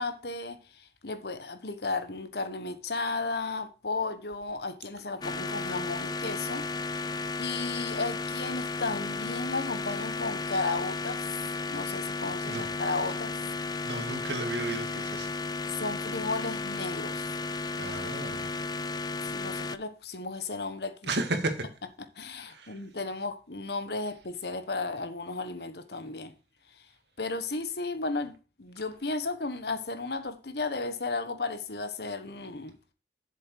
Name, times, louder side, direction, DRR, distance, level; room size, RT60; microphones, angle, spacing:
voice 1, 0.0-6.6 7.4-11.3 11.7-13.4 15.8-17.3 19.2-21.0 22.1-26.3 27.2-32.7, left 3 dB, 65° left, 1.3 m, -34 dB
sound 1, 5.2-19.8, left 3 dB, 25° left, 0.4 m, -34 dB
voice 2, 13.8-15.3 17.8-18.5 21.1-21.7 22.4-22.8, right 2 dB, 75° right, 1.9 m, -33 dB
7.6 x 7.4 x 4.7 m
head